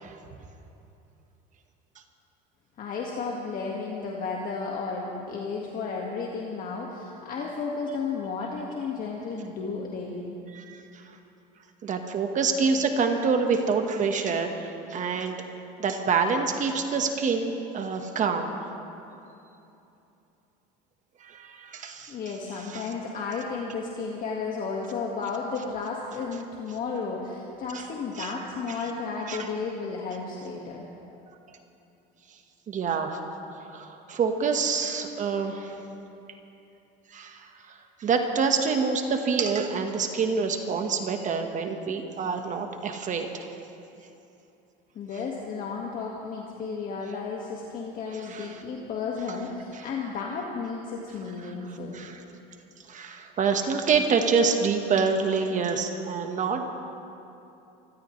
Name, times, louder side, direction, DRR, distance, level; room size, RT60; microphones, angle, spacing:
voice 1, 2.8-10.4 22.1-30.8 44.9-52.0, left 4 dB, 45° left, -2 dB, 1.8 m, -33 dB
voice 2, 11.8-15.4 15.8-18.5 21.2-22.1 22.7-22.8 27.7-27.8 28.2-28.3 29.3-29.4 32.7-33.2 33.5-35.7 37.1-37.5 38.0-43.5 48.3-48.5 49.7-49.8 51.9-52.2 52.9-56.7, right 5 dB, 40° right, 5 dB, 1.3 m, -26 dB
26.5 x 15.0 x 3.2 m, 2.8 s
supercardioid pair, 110°, 20 cm